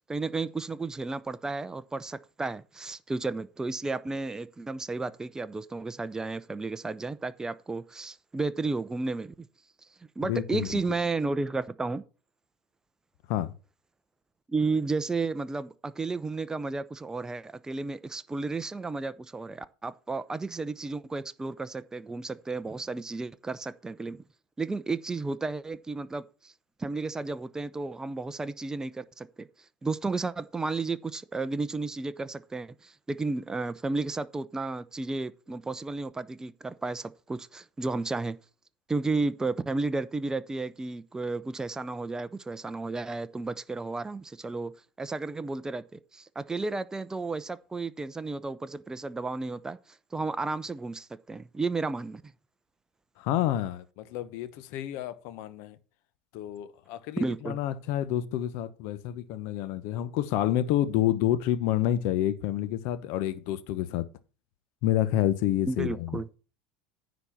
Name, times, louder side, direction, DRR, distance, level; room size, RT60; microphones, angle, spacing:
voice 1, 0.0-9.3 10.2-12.0 14.5-24.2 24.6-26.5 26.8-29.5 29.8-38.4 38.9-44.7 45.0-52.2 57.2-57.6 65.7-66.3, right 3 dB, 15° right, 0.6 m, -33 dB
voice 2, 10.2-10.7 13.3-13.5 53.2-55.8 56.3-64.1 64.8-66.2, left 12 dB, 60° left, 1.0 m, -29 dB
9.9 x 4.1 x 7.1 m
hypercardioid pair, 80°, 5 cm